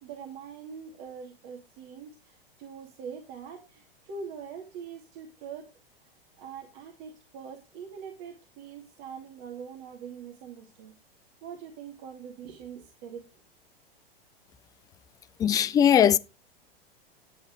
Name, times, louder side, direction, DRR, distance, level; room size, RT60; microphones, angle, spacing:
voice 1, 0.0-5.7 6.4-10.9 11.4-13.2, right 6 dB, 40° right, 2.5 m, -43 dB
voice 2, 15.4-16.2, left 9 dB, 10° left, 0.5 m, -20 dB
11.0 x 8.4 x 4.9 m
figure-of-eight pair, 95°, 30 cm